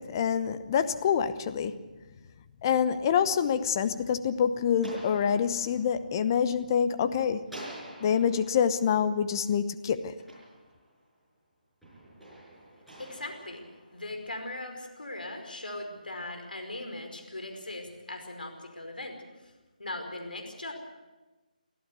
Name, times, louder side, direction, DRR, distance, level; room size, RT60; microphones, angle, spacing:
voice 1, 0.0-1.7 2.6-7.5 8.0-10.1, left 7 dB, 25° left, 11 dB, 0.9 m, -26 dB
sound 1, 3.6-7.0 7.4-11.2 11.8-14.5, right 1 dB, ahead, 6.1 m, -49 dB
voice 2, 13.0-13.6 13.9-19.2 19.4-19.5 19.8-20.7, left 2 dB, 85° left, 4 dB, 5.1 m, -39 dB
24.0 x 14.5 x 8.2 m, 1.2 s
figure-of-eight pair, 160°, 5 cm